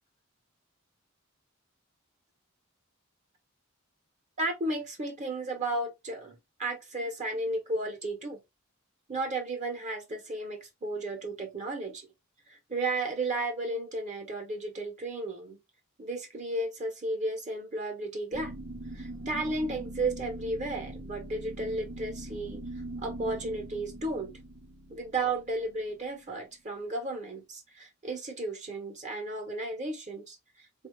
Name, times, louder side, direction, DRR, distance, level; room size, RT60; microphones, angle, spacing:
voice 1, 4.4-8.4 9.1-12.1 12.5-15.6 16.0-18.5 18.9-22.6 23.0-24.3 24.9-30.9, right 2 dB, 35° right, 1.2 m, -34 dB
sound 1, 18.3-26.2, right 1 dB, 65° right, 1.0 m, -42 dB
4.2 x 2.7 x 3.2 m
head